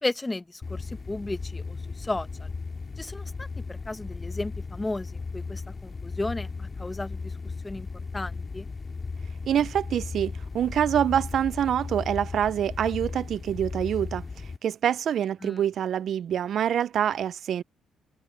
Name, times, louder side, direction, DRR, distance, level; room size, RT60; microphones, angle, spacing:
voice 1, 0.0-2.5 3.0-7.3 7.6-7.9 8.1-8.7 15.4-15.6, left 2 dB, 15° left, 0.9 m, -34 dB
sound 1, 0.6-14.6, left 4 dB, 35° left, 2.3 m, -36 dB
voice 2, 9.5-14.2 14.6-17.6, right 9 dB, 65° right, 0.4 m, -26 dB
cardioid pair, 90°, 0 cm